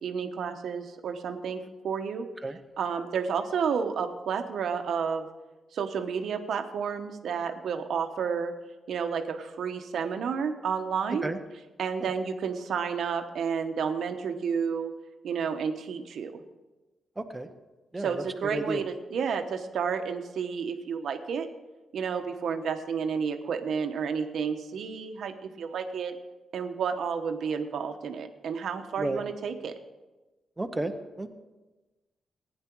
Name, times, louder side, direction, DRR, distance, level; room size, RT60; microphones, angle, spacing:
voice 1, 0.0-2.3 2.8-5.3 5.7-8.5 8.9-11.3 11.8-14.9 15.2-16.4 18.0-21.5 21.9-26.2 26.5-29.7, right 6 dB, 75° right, 7 dB, 1.0 m, -31 dB
voice 2, 17.2-17.5 17.9-18.2 18.5-18.8 29.0-29.2 30.6-30.9 31.2-31.3, right 2 dB, 15° right, 6 dB, 0.8 m, -32 dB
16.0 x 9.8 x 4.6 m, 1.1 s
wide cardioid pair, 140°, 0 cm